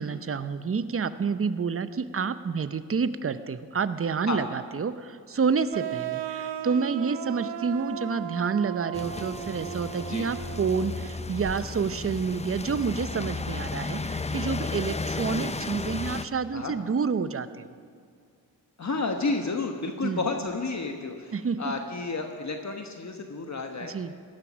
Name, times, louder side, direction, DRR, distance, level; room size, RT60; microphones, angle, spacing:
voice 1, 0.0-17.7 20.0-20.2 21.3-21.7 23.8-24.1, right 5 dB, 35° right, 13 dB, 0.7 m, -29 dB
sound 1, 5.7-11.2, right 11 dB, 75° right, 0.7 m, -36 dB
sound 2, 8.9-16.3, left 3 dB, 15° left, 0.6 m, -34 dB
voice 2, 18.8-23.9, left 3 dB, 40° left, 4 dB, 1.2 m, -31 dB
17.5 x 12.5 x 6.2 m, 2.1 s
cardioid pair, 75°, 41 cm